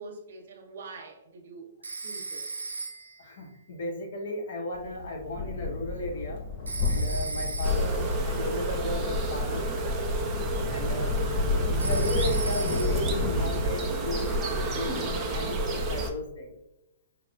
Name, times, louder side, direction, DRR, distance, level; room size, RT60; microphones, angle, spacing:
voice 1, 0.0-1.8 2.0-2.5, right 3 dB, 65° right, 1 dB, 0.8 m, -44 dB
Telephone, 1.8-3.3 6.7-8.1 11.8-13.2, right 3 dB, 90° right, 0.6 m, -36 dB
voice 2, 3.2-6.4 6.8-9.9 10.7-11.1 11.8-14.4 14.6-16.5, left 1 dB, 60° left, 1 dB, 1.0 m, -35 dB
sound 1, 4.7-13.7, left 3 dB, 35° left, 0.9 m, -31 dB
sound 2, 7.6-16.1, right 2 dB, 20° right, 0.7 m, -30 dB
5.0 x 2.3 x 2.4 m, 0.89 s
hypercardioid pair, 120°, 0 cm